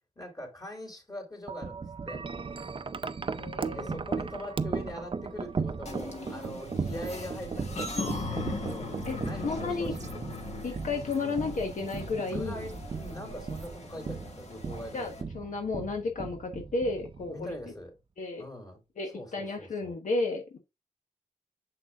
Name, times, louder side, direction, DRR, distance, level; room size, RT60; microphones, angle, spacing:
voice 1, 0.1-2.3 3.6-10.1 12.2-15.3 17.3-17.9 18.4-18.8 19.1-20.0, left 1 dB, 30° left, 3.3 m, -42 dB
Wind chime, 1.5-17.7, right 5 dB, 45° right, 0.5 m, -37 dB
voice 2, 3.4-4.0 9.1-9.2 9.4-9.9 10.6-12.6 14.9-17.6 18.2-18.4 19.0-20.6, left 3 dB, 85° left, 1.1 m, -32 dB
sound 1, 5.9-15.2, left 3 dB, 60° left, 1.4 m, -39 dB
sound 2, 6.4-13.8, right 4 dB, 70° right, 0.8 m, -45 dB
7.1 x 6.0 x 2.4 m
wide cardioid pair, 105°, 13 cm